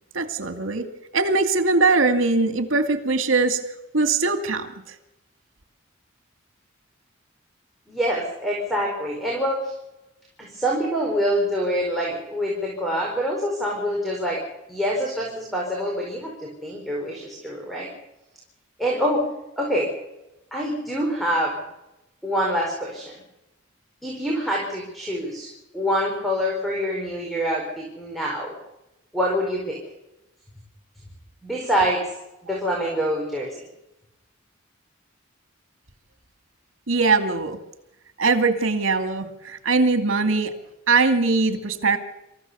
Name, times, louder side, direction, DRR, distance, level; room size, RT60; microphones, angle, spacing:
voice 1, 0.1-0.9 1.1-3.6 3.9-4.7 36.9-37.6 38.2-40.5 40.9-42.0, right 3 dB, 75° right, 8 dB, 2.4 m, -21 dB
voice 2, 7.9-9.7 10.4-14.4 14.7-17.9 18.8-19.3 19.6-19.9 20.5-21.6 22.2-23.2 24.0-28.5 29.1-29.8 31.4-32.0 32.4-33.5, equal, ahead, -2 dB, 4.9 m, -25 dB
27.0 x 15.0 x 7.0 m, 0.92 s
head